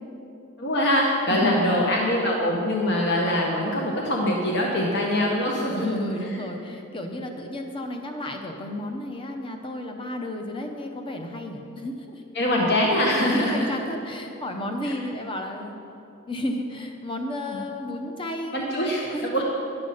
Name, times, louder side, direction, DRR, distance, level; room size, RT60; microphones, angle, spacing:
voice 1, 0.6-5.9 12.3-13.7 14.8-14.9 17.5-17.6 18.5-19.4, left 1 dB, 55° left, -1 dB, 1.0 m, -23 dB
voice 2, 1.3-1.8 5.7-12.2 13.3-15.8 16.3-19.3, left 1 dB, 25° left, 4 dB, 0.7 m, -32 dB
10.5 x 6.9 x 5.6 m, 2.8 s
head